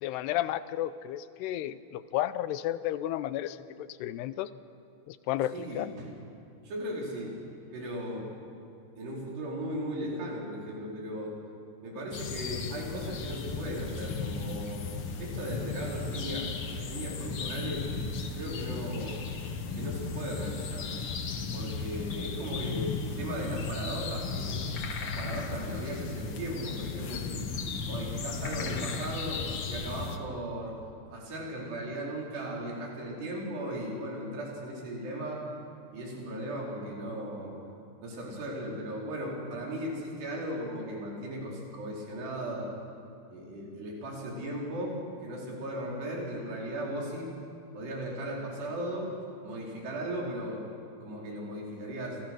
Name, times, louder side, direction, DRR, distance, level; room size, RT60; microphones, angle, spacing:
voice 1, 0.0-4.5 5.1-5.9, left 13 dB, 90° left, 14 dB, 2.9 m, -32 dB
voice 2, 5.5-6.1 6.6-7.4 7.7-8.3 9.0-11.4 11.8-14.9 15.2-17.9 18.4-19.2 19.7-24.6 25.0-27.5 27.9-30.8 31.1-35.5 35.9-37.5 38.0-42.7 43.3-47.3 47.7-49.1 49.4-50.6 51.0-52.2, right 1 dB, 85° right, -3 dB, 6.9 m, -37 dB
sound 1, 12.1-30.2, left 4 dB, 55° left, 1.7 m, -35 dB
29.5 x 26.5 x 6.3 m, 2.4 s
omnidirectional pair, 4.7 m